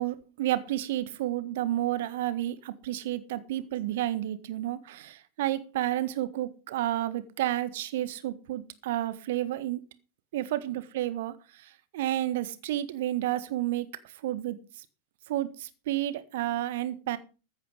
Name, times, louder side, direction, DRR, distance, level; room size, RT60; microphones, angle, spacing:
voice 1, 0.0-9.9 10.3-14.8 15.3-17.2, right 14 dB, 55° right, 1.5 m, -31 dB
14.5 x 9.2 x 5.3 m
figure-of-eight pair, 90°, 0 cm